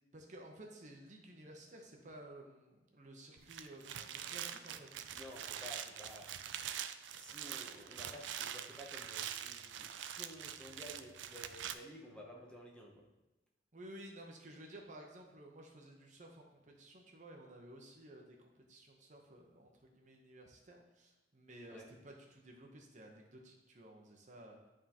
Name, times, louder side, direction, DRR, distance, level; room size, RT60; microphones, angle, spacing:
voice 1, 0.1-4.9 13.7-24.6, right 1 dB, 45° right, 1 dB, 0.8 m, -54 dB
sound 1, 3.4-11.7, right 10 dB, 85° right, 0.4 m, -44 dB
voice 2, 5.1-6.3 7.1-13.0 21.7-21.9, equal, 5° left, -2 dB, 0.7 m, -53 dB
10.5 x 3.7 x 2.9 m, 1.1 s
head